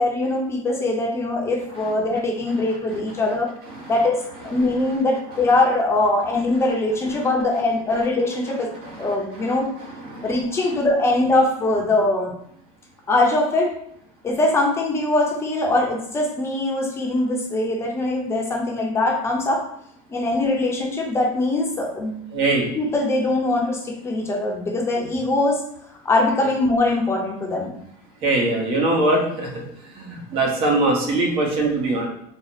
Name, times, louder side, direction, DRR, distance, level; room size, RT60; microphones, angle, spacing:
voice 1, 0.0-3.5 3.9-8.7 9.0-9.7 10.2-12.3 13.1-13.7 14.2-19.6 20.1-22.2 22.7-25.6 26.0-27.7, left 2 dB, 20° left, -1 dB, 0.8 m, -22 dB
voice 2, 22.3-22.6 28.2-29.6 30.0-32.1, right 2 dB, 50° right, 0 dB, 1.1 m, -21 dB
3.9 x 2.1 x 4.1 m, 0.71 s
supercardioid pair, 135°, 12 cm